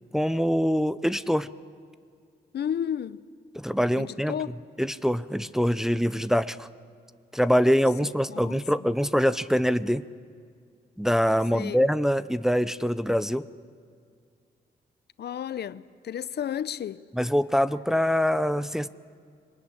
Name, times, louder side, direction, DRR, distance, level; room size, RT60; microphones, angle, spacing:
voice 1, 0.1-1.5 3.5-4.4 4.8-6.7 7.3-10.0 11.0-13.4 17.1-18.9, equal, ahead, 0.6 m, -24 dB
voice 2, 2.5-3.2 4.0-4.5 8.3-8.6 11.5-11.8 15.2-17.0, left 9 dB, 70° left, 0.6 m, -32 dB
24.0 x 19.5 x 9.9 m
cardioid pair, 105°, 18 cm